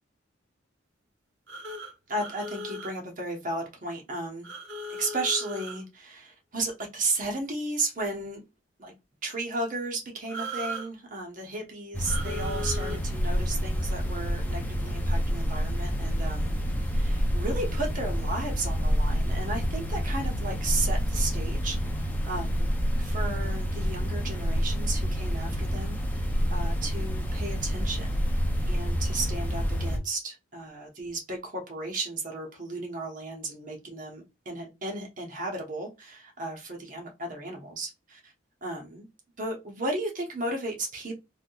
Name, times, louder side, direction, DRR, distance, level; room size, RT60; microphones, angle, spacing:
sound 1, 1.5-2.9 4.4-5.8 10.3-10.9 12.0-13.0, equal, 75° right, 1.0 m, -37 dB
voice 1, 2.1-4.5 4.9-8.4 8.8-8.9 9.2-16.5 16.9-28.2 28.7-38.3 38.6-39.1 39.4-41.2, right 2 dB, 40° right, 0.9 m, -34 dB
sound 2, 11.9-30.0, equal, 10° left, 0.4 m, -28 dB
3.4 x 2.6 x 2.3 m
head